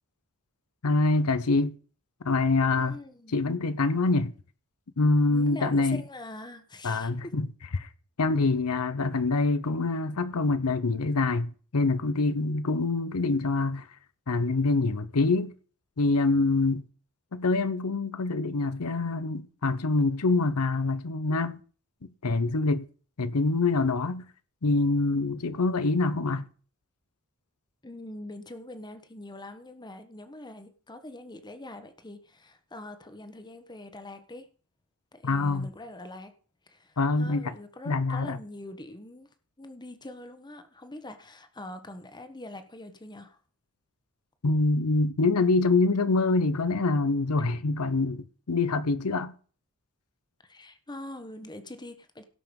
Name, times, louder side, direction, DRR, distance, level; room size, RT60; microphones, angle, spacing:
voice 1, 0.8-1.8 2.2-3.0 3.3-4.3 5.0-6.0 6.8-7.5 7.8-7.9 8.2-13.9 14.3-15.5 16.0-16.9 17.3-21.6 22.2-22.9 23.2-24.3 24.6-26.5 35.2-35.7 37.0-37.5 37.9-38.4 44.4-49.3, left 3 dB, 85° left, 0.8 m, -25 dB
voice 2, 2.8-3.4 5.3-7.1 27.8-34.5 35.1-36.3 36.7-39.3 39.6-43.4 50.4-52.2, left 1 dB, 20° left, 1.3 m, -43 dB
17.0 x 5.9 x 5.3 m
head